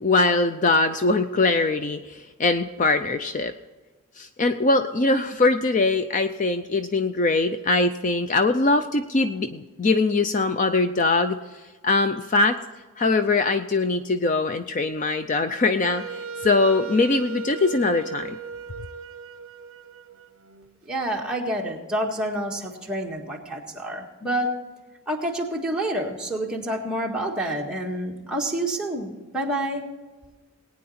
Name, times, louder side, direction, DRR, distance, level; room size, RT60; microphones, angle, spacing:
voice 1, 0.0-3.5 4.2-11.4 11.8-12.6 13.0-18.4, left 3 dB, 35° left, 9 dB, 0.5 m, -22 dB
Wind instrument woodwind instrument, 15.8-20.7, right 4 dB, 70° right, 0.7 m, -37 dB
voice 2, 20.8-24.5 25.1-29.9, right 1 dB, 5° right, -2 dB, 1.7 m, -28 dB
19.0 x 9.7 x 4.3 m, 1.3 s
head